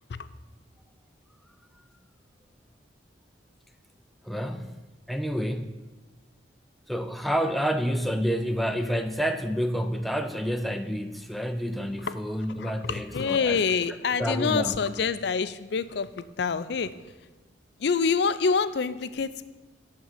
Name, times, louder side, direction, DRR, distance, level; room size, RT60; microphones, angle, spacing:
voice 1, 4.2-4.7 5.1-5.8 6.9-13.6 14.2-14.8, equal, ahead, 6 dB, 0.4 m, -29 dB
voice 2, 12.6-16.9 17.8-19.4, left 5 dB, 60° left, 14 dB, 0.4 m, -26 dB
11.0 x 3.7 x 7.2 m, 1.2 s
head